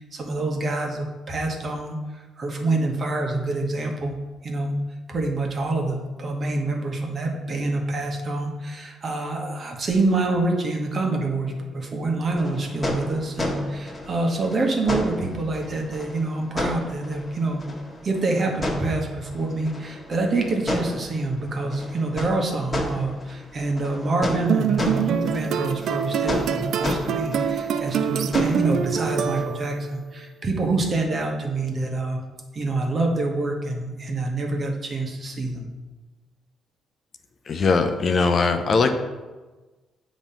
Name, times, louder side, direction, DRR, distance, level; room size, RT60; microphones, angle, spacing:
voice 1, 0.1-4.1 4.4-4.8 5.1-17.6 18.0-32.2 32.5-35.7, right 2 dB, 45° right, 2 dB, 1.1 m, -26 dB
sound 1, 12.3-29.4, left 1 dB, 20° left, 1.5 m, -32 dB
sound 2, 24.5-29.9, right 8 dB, 70° right, 0.3 m, -25 dB
voice 2, 37.5-38.9, left 4 dB, 50° left, 7 dB, 0.6 m, -20 dB
7.2 x 3.1 x 5.5 m, 1.2 s
cardioid pair, 90°, 0 cm